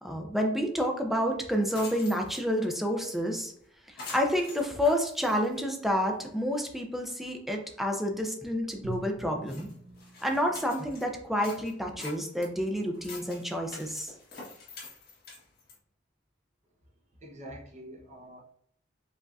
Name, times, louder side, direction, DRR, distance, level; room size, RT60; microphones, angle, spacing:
voice 1, 0.0-3.5 3.9-9.7 10.2-14.1, equal, ahead, 2 dB, 0.6 m, -29 dB
sound 1, 0.8-0.9 1.3-1.4 1.7-2.6 3.1-3.2 3.5-3.7 4.0-6.1 6.5-6.6 7.2-7.3 7.6-7.8 8.2-8.3 8.9-9.0 9.4-11.1 11.4-15.8, left 3 dB, 50° left, 1.7 m, -46 dB
Drum, 8.8-11.8, right 2 dB, 75° right, 1.3 m, -45 dB
voice 2, 17.2-18.4, equal, 35° right, -1 dB, 1.1 m, -45 dB
5.0 x 3.6 x 2.6 m, 0.67 s
head